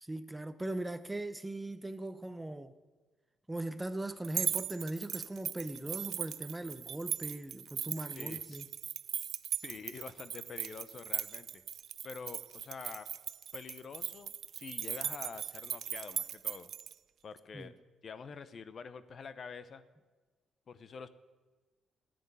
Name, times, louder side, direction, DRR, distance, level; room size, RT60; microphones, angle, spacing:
voice 1, 0.0-2.7 3.5-8.7 17.5-17.7, right 1 dB, 10° right, 0.6 m, -39 dB
sound 1, 4.2-16.9, right 9 dB, 65° right, 0.3 m, -38 dB
voice 2, 8.1-8.6 9.5-11.6 12.0-13.1 13.5-16.7 17.2-17.7 18.0-19.8 20.7-21.1, left 5 dB, 50° left, 0.7 m, -47 dB
11.0 x 7.7 x 9.6 m
cardioid pair, 90°, 0 cm